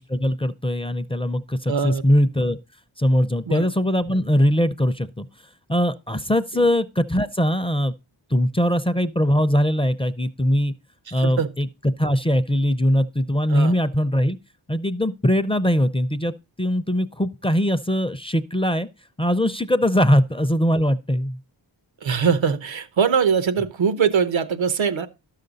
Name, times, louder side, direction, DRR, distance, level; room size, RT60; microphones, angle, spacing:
voice 1, 0.0-2.6 3.0-5.3 5.7-7.9 8.3-10.7 11.1-14.4 14.7-18.9 19.2-21.4, equal, 15° left, 0.4 m, -21 dB
voice 2, 1.7-2.0 3.5-3.7 11.1-11.5 13.5-13.7 22.0-25.1, right 6 dB, 90° right, 0.9 m, -22 dB
12.0 x 6.6 x 3.9 m
wide cardioid pair, 85°, 45 cm